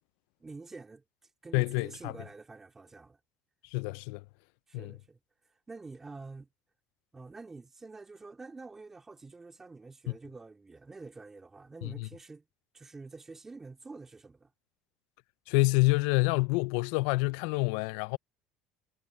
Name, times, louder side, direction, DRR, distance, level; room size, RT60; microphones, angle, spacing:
voice 1, 0.4-1.0 1.4-3.2 4.7-5.2 5.7-6.5 7.1-12.4 12.7-14.5, right 3 dB, 15° right, 2.7 m, -47 dB
voice 2, 1.5-2.1 3.7-4.2 4.7-4.9 11.8-12.1 15.5-18.2, left 25 dB, 75° left, 0.4 m, -27 dB
cardioid pair, 145°, 3 cm